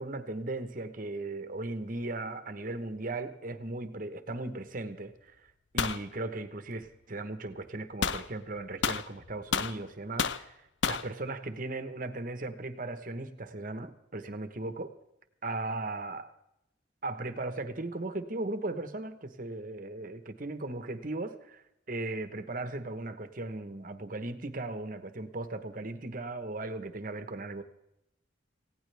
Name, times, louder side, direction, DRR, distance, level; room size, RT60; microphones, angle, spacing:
voice 1, 0.0-5.5 5.7-14.9 15.4-16.3 17.0-27.6, right 2 dB, 45° right, 9 dB, 1.1 m, -37 dB
sound 1, 5.8-6.0 8.0-8.2 8.8-9.8 10.2-10.4 10.8-11.1, left 6 dB, 75° left, 0.6 m, -30 dB
18.5 x 16.5 x 3.4 m, 0.83 s
head